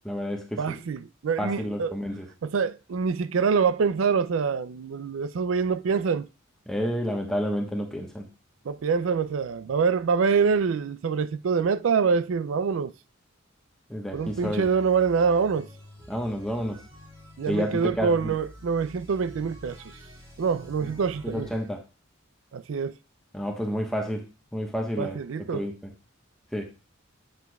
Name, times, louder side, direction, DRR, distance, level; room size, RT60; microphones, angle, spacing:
voice 1, 0.0-0.7 1.4-2.3 6.7-8.3 13.9-14.7 16.1-16.8 17.5-18.3 20.8-20.9 21.2-21.8 23.3-24.2 24.5-25.2 25.5-25.7 26.5-26.6, equal, ahead, 1.1 m, -30 dB
voice 2, 0.6-2.0 2.4-6.3 8.7-12.9 14.1-15.7 17.4-19.8 20.4-21.5 22.5-22.9 25.0-25.7, right 5 dB, 75° right, 0.4 m, -25 dB
sound 1, 14.1-21.7, equal, 30° right, 2.4 m, -48 dB
8.1 x 7.0 x 2.3 m
head